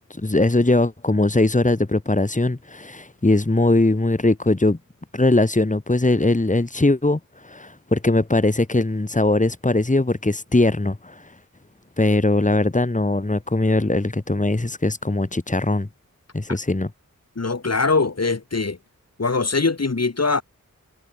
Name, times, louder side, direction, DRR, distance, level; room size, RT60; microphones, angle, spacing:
voice 1, 0.1-4.8 5.1-11.3 12.0-15.9 16.3-16.9, left 2 dB, 25° left, 3.6 m, -20 dB
voice 2, 17.4-18.8 19.2-20.4, left 3 dB, 50° left, 4.6 m, -22 dB
wide cardioid pair, 90°, 32 cm